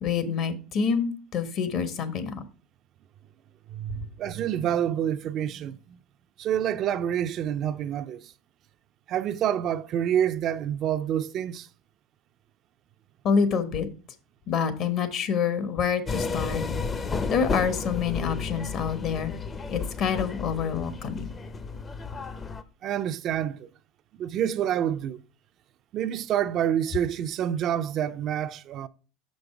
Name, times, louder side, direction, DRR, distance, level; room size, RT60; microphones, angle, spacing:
voice 1, 0.0-2.3 13.2-13.9 14.5-16.6 17.3-19.3 19.7-21.3, left 6 dB, 55° left, 1.2 m, -27 dB
voice 2, 3.7-6.0 6.4-8.2 9.1-11.7 22.8-23.7 24.2-25.2 25.9-28.9, right 10 dB, 50° right, 0.4 m, -27 dB
sound 1, 16.1-22.6, left 4 dB, 30° left, 0.6 m, -32 dB
6.4 x 5.3 x 4.6 m
supercardioid pair, 95°, 0 cm